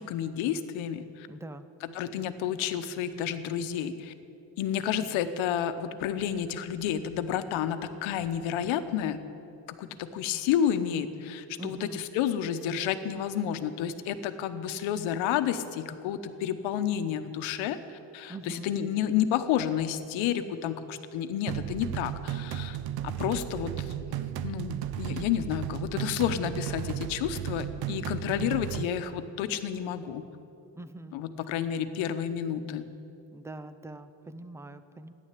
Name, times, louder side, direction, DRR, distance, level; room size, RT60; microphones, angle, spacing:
voice 1, 0.0-1.3 1.8-4.1 4.6-9.2 9.7-17.8 18.1-22.8 23.0-23.9 24.4-30.2 31.1-32.9, left 9 dB, 80° left, 10 dB, 1.1 m, -30 dB
voice 2, 1.3-1.7 11.6-12.0 18.3-18.7 30.8-31.1 33.3-35.1, right 2 dB, 5° right, 12 dB, 0.5 m, -43 dB
sound 1, 21.5-28.9, right 10 dB, 55° right, 0.7 m, -34 dB
14.5 x 10.5 x 8.4 m, 2.8 s
cardioid pair, 135°, 47 cm